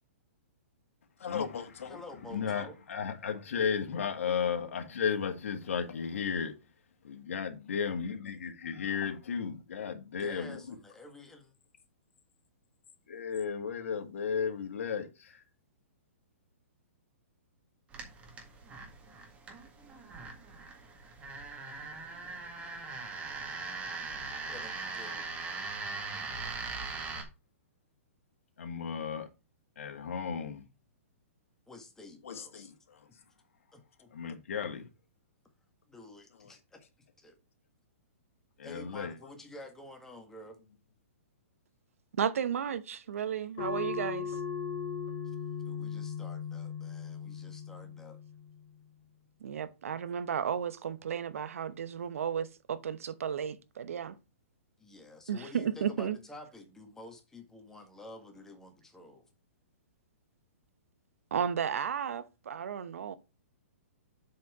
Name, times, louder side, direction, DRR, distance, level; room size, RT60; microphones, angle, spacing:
voice 1, 1.2-2.0 2.3-6.5 7.0-10.6 13.1-15.4 28.6-29.3 29.8-30.7 32.2-33.0 34.1-34.9 38.6-39.1, left 6 dB, 75° left, 1.7 m, -34 dB
voice 2, 1.9-2.8 10.1-11.5 24.5-25.3 31.7-32.7 33.7-34.1 35.9-36.8 37.2-37.4 38.6-40.6 45.6-48.2 54.8-59.2, left 2 dB, 5° left, 1.5 m, -50 dB
sound 1, 17.9-27.2, right 4 dB, 15° right, 1.7 m, -40 dB
voice 3, 42.2-44.4 49.4-54.2 55.3-56.2 61.3-63.2, right 8 dB, 75° right, 0.9 m, -33 dB
sound 2, 43.6-48.7, left 6 dB, 40° left, 2.2 m, -38 dB
7.7 x 4.3 x 4.8 m
hypercardioid pair, 150°, 8 cm